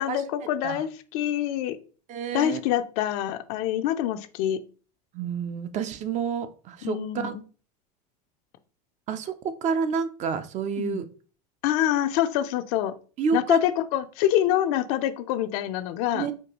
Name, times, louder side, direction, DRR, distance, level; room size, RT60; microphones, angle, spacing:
voice 1, 0.0-1.8 2.3-4.6 6.8-7.4 10.8-11.0 11.6-12.9 13.3-16.3, left 12 dB, 60° left, 11 dB, 0.5 m, -26 dB
voice 2, 2.1-2.6 5.1-7.3 9.1-11.0 13.2-13.6 16.1-16.3, right 6 dB, 35° right, 11 dB, 0.5 m, -29 dB
4.4 x 2.3 x 2.9 m, 0.38 s
hypercardioid pair, 100°, 20 cm